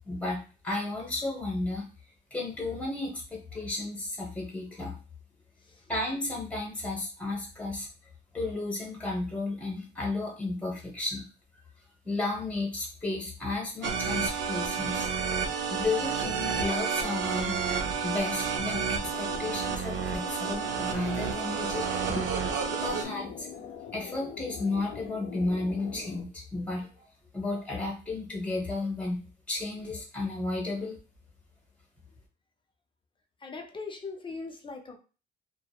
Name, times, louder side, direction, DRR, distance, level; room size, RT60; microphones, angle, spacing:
voice 1, 0.0-0.4 0.6-1.8 2.3-4.9 5.9-7.9 8.3-11.2 12.0-15.1 15.7-21.9 22.8-23.5 23.9-27.0 27.3-29.2 29.5-31.0, left 2 dB, 5° left, -1 dB, 1.0 m, -33 dB
sound 1, 13.8-23.0, right 6 dB, 65° right, 0.4 m, -30 dB
sound 2, 19.0-26.2, left 7 dB, 75° left, 0.5 m, -43 dB
voice 2, 22.1-22.8 33.4-35.0, left 3 dB, 25° left, 4 dB, 0.5 m, -40 dB
2.7 x 2.0 x 2.3 m, 0.34 s
cardioid pair, 90°, 20 cm